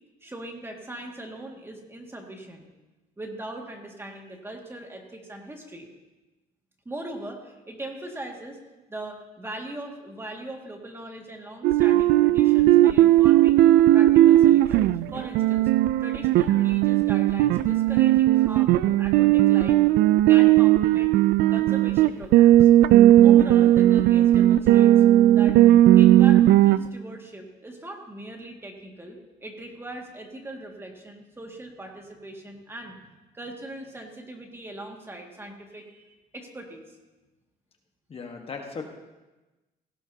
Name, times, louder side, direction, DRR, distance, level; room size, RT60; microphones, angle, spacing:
voice 1, 0.2-2.7 3.2-5.9 6.9-8.6 8.9-13.6 13.9-15.7 16.0-19.8 20.3-22.7 23.2-24.9 25.4-25.6 26.0-33.0 33.3-36.9, right 1 dB, 15° right, 1 dB, 2.1 m, -40 dB
sound 1, 11.6-26.8, right 13 dB, 75° right, 0.4 m, -17 dB
voice 2, 38.1-38.9, left 4 dB, 35° left, 2 dB, 1.4 m, -37 dB
17.5 x 16.5 x 2.8 m, 1.1 s
cardioid pair, 110°, 17 cm